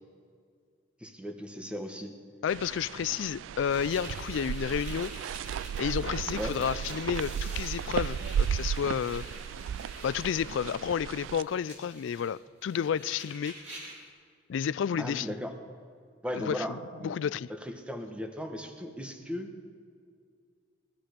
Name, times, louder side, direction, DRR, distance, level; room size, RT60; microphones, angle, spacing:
voice 1, 1.0-2.1 6.3-6.6 15.0-15.5 16.2-17.1 17.5-19.5, equal, 5° right, 1.2 m, -37 dB
voice 2, 2.4-5.1 5.8-9.2 10.0-13.5 14.5-15.3 16.3-16.7 17.0-17.5, left 7 dB, 80° left, 0.3 m, -31 dB
sound 1, 2.5-11.4, right 8 dB, 90° right, 0.3 m, -35 dB
sound 2, 3.7-14.1, right 1 dB, 40° right, 3.8 m, -48 dB
19.0 x 13.0 x 5.1 m
head